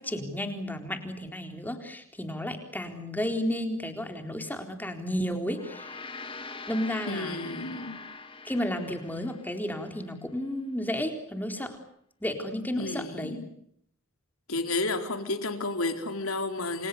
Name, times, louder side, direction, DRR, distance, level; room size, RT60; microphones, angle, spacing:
voice 1, 0.0-5.9 6.7-7.4 8.4-11.8 12.2-13.4, left 1 dB, 10° left, 5 dB, 4.0 m, -32 dB
Gong, 5.4-10.1, left 4 dB, 25° left, 2.2 m, -43 dB
voice 2, 7.1-8.0 12.8-13.5 14.5-16.9, left 2 dB, 75° left, 6 dB, 4.1 m, -31 dB
30.0 x 26.0 x 6.8 m, 0.70 s
head